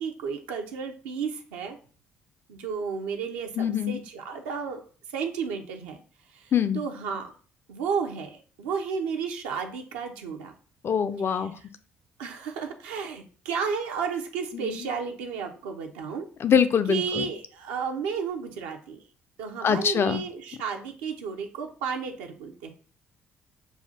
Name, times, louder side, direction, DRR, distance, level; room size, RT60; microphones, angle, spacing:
voice 1, 0.0-1.8 2.5-4.8 5.1-6.0 6.3-7.3 7.7-10.5 11.2-11.7 12.2-16.3 16.9-19.0 19.4-22.7, right 6 dB, 70° right, 3 dB, 0.6 m, -33 dB
voice 2, 3.6-4.0 6.5-6.8 10.8-11.5 14.5-14.8 16.4-17.3 19.6-20.2, left 7 dB, 40° left, 11 dB, 0.4 m, -24 dB
6.9 x 2.4 x 2.7 m, 0.40 s
figure-of-eight pair, 45°, 6 cm